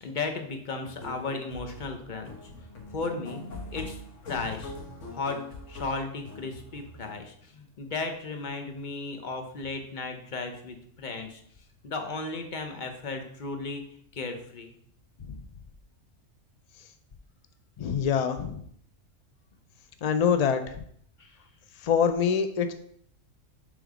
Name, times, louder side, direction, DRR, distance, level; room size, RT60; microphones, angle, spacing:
voice 1, 0.0-2.4 2.9-3.4 3.7-4.7 5.1-5.4 5.7-11.4 11.8-13.8 14.1-14.7 21.2-21.4, left 3 dB, 40° left, 5 dB, 0.9 m, -35 dB
sound 1, 0.8-7.2, left 2 dB, 70° left, 1.5 m, -42 dB
voice 2, 17.8-18.6 20.0-20.8 21.8-22.7, left 7 dB, 90° left, 8 dB, 0.3 m, -25 dB
6.7 x 3.7 x 4.9 m, 0.65 s
omnidirectional pair, 1.4 m